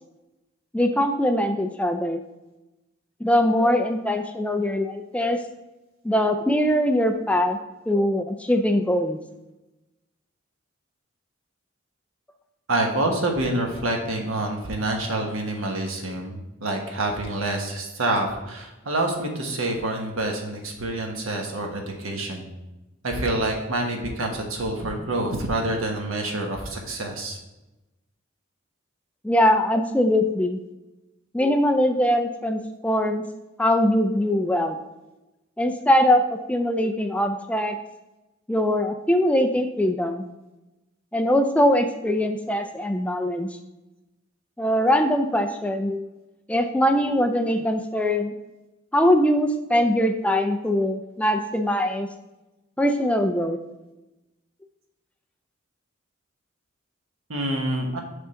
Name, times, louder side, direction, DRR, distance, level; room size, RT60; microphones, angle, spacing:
voice 1, 0.7-2.2 3.2-5.4 6.0-7.6 7.9-9.2 29.2-30.6 31.3-33.2 33.6-34.8 35.6-36.2 36.5-37.8 38.5-40.2 41.1-43.5 44.6-46.1 46.5-48.3 48.9-52.1 52.8-53.6, left 1 dB, 5° left, 6 dB, 0.4 m, -22 dB
voice 2, 12.7-22.5 23.0-27.4 57.3-58.0, right 1 dB, 85° right, 2 dB, 1.3 m, -27 dB
6.7 x 3.7 x 5.7 m, 1.0 s
head